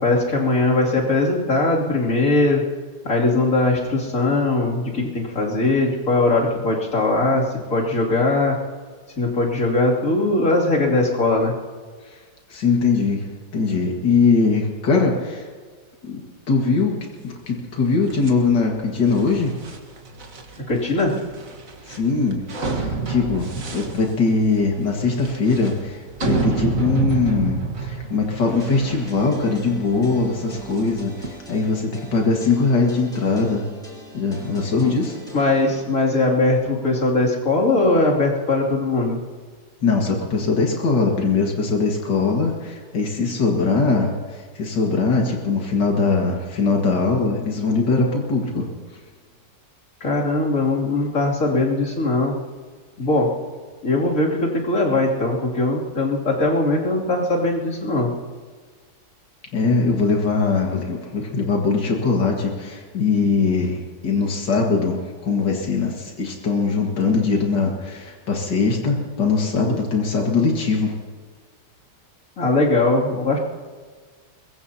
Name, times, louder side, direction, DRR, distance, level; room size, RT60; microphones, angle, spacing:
voice 1, 0.0-2.6 3.0-7.4 7.7-8.6 9.2-11.5 20.7-21.1 34.6-34.9 35.3-39.2 50.0-52.3 53.0-53.3 53.8-58.1 72.4-73.4, left 2 dB, 50° left, -3 dB, 3.2 m, -20 dB
voice 2, 12.5-15.5 16.0-16.2 16.5-17.0 17.2-19.5 21.9-22.4 22.7-33.7 34.1-35.2 39.8-48.7 59.5-70.9, left 4 dB, 85° left, 0 dB, 2.5 m, -21 dB
sound 1, 18.1-31.3, right 3 dB, 50° right, 1.9 m, -29 dB
sound 2, 28.6-36.2, equal, ahead, 6.3 m, -41 dB
23.0 x 22.0 x 2.9 m, 1.5 s
omnidirectional pair, 1.8 m